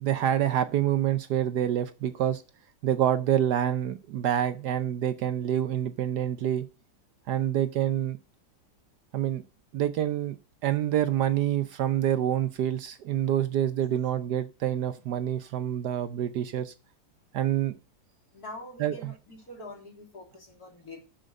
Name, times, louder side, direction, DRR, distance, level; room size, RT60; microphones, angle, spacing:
voice 1, 0.0-2.4 2.8-6.7 7.3-8.2 9.1-9.4 9.7-10.4 10.6-16.7 17.3-17.8 18.8-18.9, right 11 dB, 70° right, 12 dB, 1.1 m, -27 dB
voice 2, 18.3-21.0, left 1 dB, 50° left, -1 dB, 3.5 m, -44 dB
6.6 x 6.3 x 7.5 m, 0.31 s
omnidirectional pair, 2.0 m